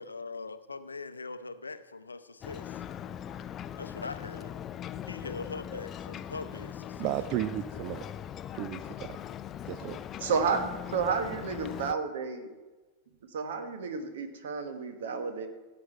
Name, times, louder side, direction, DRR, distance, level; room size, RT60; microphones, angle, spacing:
voice 1, 0.0-2.8 3.8-4.5 5.0-7.1, left 4 dB, 80° left, 12 dB, 0.6 m, -41 dB
Ocean, 2.4-11.9, left 9 dB, 30° left, 0.4 m, -40 dB
voice 2, 7.0-8.0 8.5-9.2 9.7-10.0, right 13 dB, 40° right, 12 dB, 0.4 m, -34 dB
voice 3, 10.2-12.5 13.3-15.5, right 5 dB, 60° right, 7 dB, 1.3 m, -31 dB
16.0 x 7.7 x 4.3 m, 1.2 s
figure-of-eight pair, 90°, 0 cm